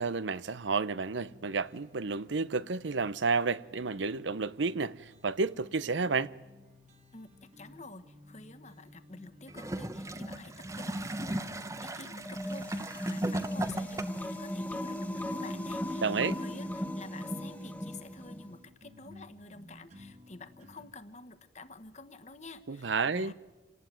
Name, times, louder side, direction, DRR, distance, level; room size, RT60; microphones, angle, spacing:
voice 1, 0.0-6.3 16.0-16.3 22.7-23.3, right 4 dB, 85° right, 0.7 m, -31 dB
sound 1, 1.2-20.8, left 2 dB, 40° right, 2.4 m, -57 dB
voice 2, 7.1-11.1 11.4-23.3, left 3 dB, 40° left, 1.3 m, -49 dB
Gurgling / Toilet flush, 9.5-14.4 15.2-15.3, right 1 dB, 15° right, 0.9 m, -36 dB
sound 2, 12.2-18.5, equal, 10° left, 1.1 m, -37 dB
27.5 x 18.5 x 9.2 m
head